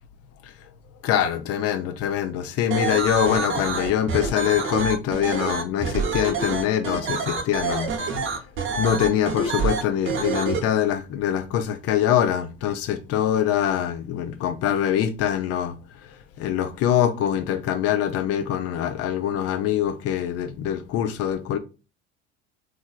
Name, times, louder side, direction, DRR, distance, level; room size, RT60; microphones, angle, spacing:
voice 1, 1.0-7.9 8.8-15.7 16.4-21.6, left 10 dB, 50° left, 0.6 m, -24 dB
sound 1, 2.7-10.6, right 4 dB, 40° right, 0.9 m, -27 dB
3.1 x 2.5 x 2.3 m
hypercardioid pair, 75°, 32 cm